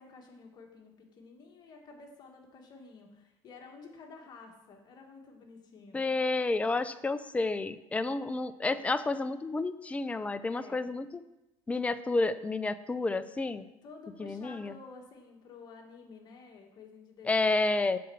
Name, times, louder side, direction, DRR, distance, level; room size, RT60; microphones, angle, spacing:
voice 1, 0.0-6.0 10.5-10.9 13.8-17.5, left 4 dB, 40° left, 2 dB, 1.4 m, -51 dB
voice 2, 5.9-11.2 11.7-13.7 14.2-14.7 17.3-18.0, left 3 dB, 10° left, 12 dB, 0.4 m, -30 dB
7.7 x 4.3 x 6.8 m, 0.97 s
cardioid pair, 125°, 11 cm